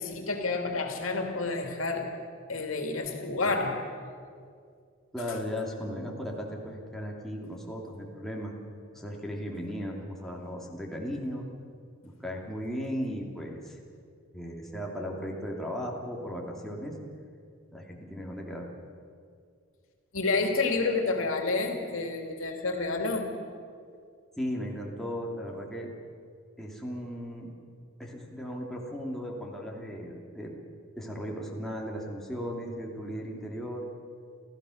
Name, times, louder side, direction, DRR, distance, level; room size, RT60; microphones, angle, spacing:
voice 1, 0.0-2.1 2.5-3.9 5.3-5.4 20.1-23.3, left 3 dB, 85° left, 4 dB, 2.6 m, -29 dB
voice 2, 5.1-8.5 8.9-11.4 12.0-13.8 14.3-16.9 17.7-18.7 24.4-25.9 26.6-27.5 28.0-30.6 30.9-33.8, equal, ahead, -2 dB, 2.7 m, -36 dB
29.0 x 15.0 x 6.5 m, 2.2 s
head